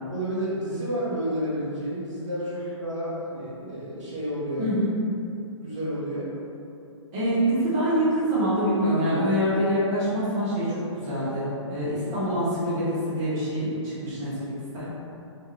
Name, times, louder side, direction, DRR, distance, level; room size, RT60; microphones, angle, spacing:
voice 1, 0.1-4.6 5.6-6.3, equal, 75° right, -8 dB, 1.2 m, -30 dB
voice 2, 4.6-4.9 7.1-14.9, equal, 30° right, -11 dB, 1.1 m, -25 dB
2.5 x 2.3 x 3.1 m, 2.6 s
hypercardioid pair, 140°, 16 cm